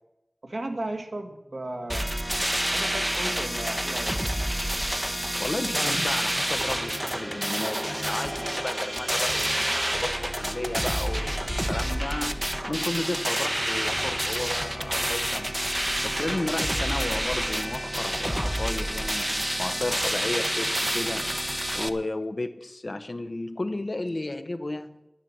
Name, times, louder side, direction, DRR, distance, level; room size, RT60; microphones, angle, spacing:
voice 1, 0.4-2.1 2.7-4.2, right 2 dB, 70° right, 4 dB, 1.9 m, -35 dB
sound 1, 1.9-21.9, right 1 dB, 15° right, 0.9 m, -28 dB
voice 2, 5.4-15.5 16.0-21.3 21.7-25.1, left 2 dB, 55° left, 9 dB, 1.0 m, -33 dB
10.5 x 10.5 x 7.3 m, 0.91 s
wide cardioid pair, 50°, 0 cm